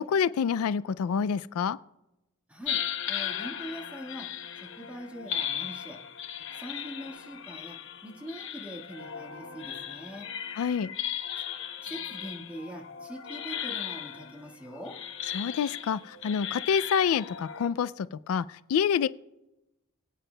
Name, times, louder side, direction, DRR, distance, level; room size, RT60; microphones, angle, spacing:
voice 1, 0.0-1.8 10.6-10.9 15.3-19.1, left 7 dB, 85° left, 17 dB, 0.3 m, -27 dB
sound 1, 2.7-17.7, left 9 dB, 60° left, 0.9 m, -37 dB
voice 2, 3.1-4.3 4.6-6.0 6.5-7.8 8.0-10.3 11.8-15.0, equal, 5° right, 0 dB, 1.7 m, -42 dB
23.5 x 9.0 x 2.2 m, 0.91 s
head